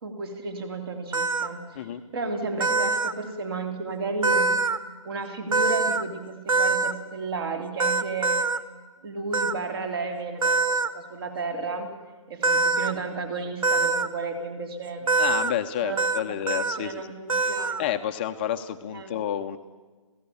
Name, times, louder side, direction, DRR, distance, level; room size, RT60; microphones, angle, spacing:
voice 1, 0.0-4.6 5.0-8.4 9.0-11.9 12.3-15.1 15.8-17.9 18.9-19.1, right 3 dB, 45° right, 5 dB, 3.4 m, -33 dB
sound 1, 1.1-1.5 2.6-3.1 4.2-4.8 5.5-6.0 6.5-6.9 7.8-8.6 9.3-9.5 10.4-10.9 12.4-12.9 13.6-14.1 15.1-15.5 16.0-16.2 16.5-16.8 17.3-17.8, right 3 dB, 75° right, 1.5 m, -23 dB
voice 2, 15.2-17.1 17.8-19.6, left 10 dB, 20° left, 6 dB, 0.7 m, -30 dB
27.5 x 17.0 x 7.1 m, 1.3 s
hypercardioid pair, 165°, 18 cm